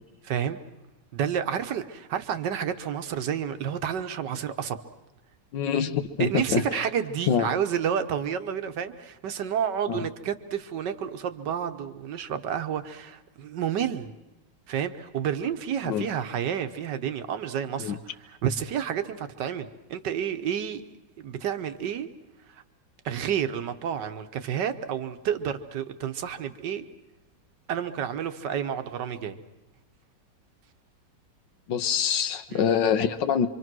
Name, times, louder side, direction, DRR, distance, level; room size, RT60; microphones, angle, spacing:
voice 1, 0.2-0.6 1.1-4.8 6.2-14.1 14.7-20.8 21.2-22.1 22.5-22.6 23.0-26.8 27.7-29.4 32.5-32.6, right 8 dB, 70° right, 1.6 m, -30 dB
voice 2, 5.5-6.9 7.3-7.5 9.9-10.0 15.8-16.1 17.8-18.0 31.7-33.5, left 7 dB, 80° left, 1.7 m, -25 dB
25.5 x 25.0 x 6.2 m
omnidirectional pair, 2.0 m